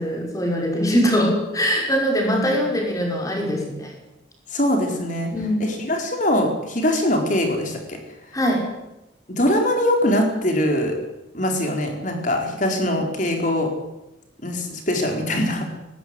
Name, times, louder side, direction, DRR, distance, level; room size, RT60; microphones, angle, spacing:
voice 1, 0.0-3.9 5.3-5.6 8.3-8.7, equal, 15° left, 1 dB, 5.6 m, -22 dB
voice 2, 4.5-5.3 5.6-8.0 9.3-11.0 11.3-13.7 14.4-15.7, left 1 dB, 40° left, 3 dB, 4.5 m, -22 dB
19.0 x 16.5 x 9.7 m, 0.94 s
head